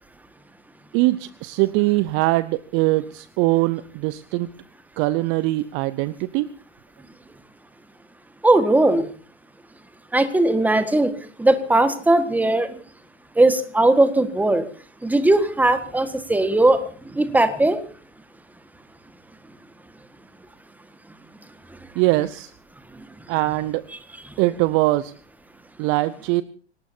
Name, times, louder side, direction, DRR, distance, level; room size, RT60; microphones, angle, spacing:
voice 1, 0.9-4.5 5.0-6.5 22.0-22.5 23.3-23.9 24.4-25.1 25.8-26.4, right 19 dB, 35° right, 18 dB, 0.6 m, -22 dB
voice 2, 8.4-9.1 10.1-11.1 11.4-12.7 13.4-14.6 15.0-16.8 17.1-17.8, right 2 dB, 5° right, 10 dB, 1.6 m, -18 dB
25.5 x 18.5 x 2.8 m, 0.42 s
figure-of-eight pair, 95°, 35 cm